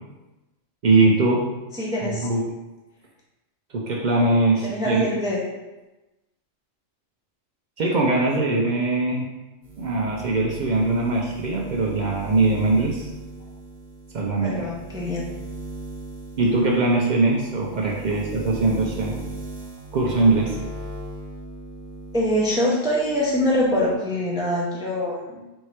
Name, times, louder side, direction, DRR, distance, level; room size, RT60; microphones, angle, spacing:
voice 1, 0.8-1.4 2.1-2.4 3.7-5.1 7.8-9.3 9.8-13.1 14.1-14.7 16.4-19.2 19.9-20.6, right 3 dB, 75° right, -1 dB, 0.4 m, -21 dB
voice 2, 1.7-2.3 4.7-5.4 14.4-15.2 22.1-25.3, left 1 dB, 5° right, -4 dB, 0.4 m, -24 dB
sound 1, 9.6-22.6 22.9-23.9, right 1 dB, 55° right, 0.9 m, -38 dB
4.4 x 2.7 x 3.2 m, 1.1 s
omnidirectional pair, 1.4 m